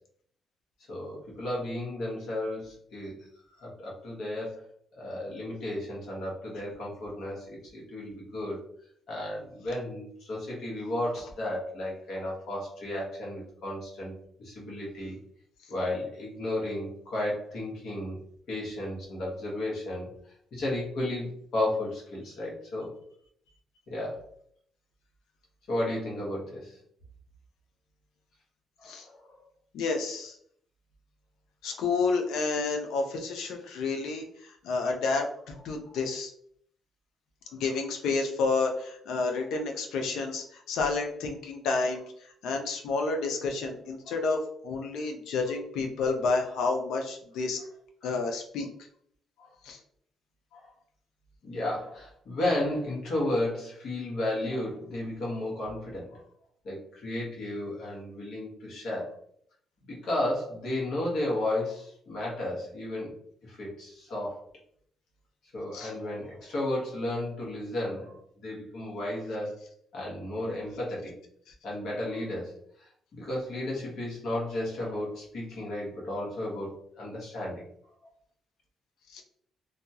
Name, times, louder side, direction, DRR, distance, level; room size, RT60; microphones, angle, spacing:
voice 1, 0.9-3.2 3.6-4.6 5.0-8.6 9.1-14.1 14.4-15.2 15.7-18.2 18.5-20.1 20.5-22.9 23.9-24.3 25.7-26.8 28.8-29.3 35.8-35.9 44.1-44.2 48.0-48.1 49.4-49.5 50.5-50.7 51.4-56.2 56.6-59.1 59.9-63.1 63.4-64.4 65.5-68.2 68.4-69.6 69.9-71.1 71.6-72.5 73.1-77.6, left 1 dB, 70° left, -4 dB, 1.2 m, -33 dB
voice 2, 29.7-30.3 31.6-35.3 35.6-36.3 37.5-42.0 42.4-47.6 48.0-48.7 49.6-49.8 65.7-65.9 79.1-79.2, left 4 dB, 85° left, 3 dB, 0.5 m, -30 dB
2.7 x 2.2 x 2.8 m, 0.65 s
cardioid pair, 90°, 0 cm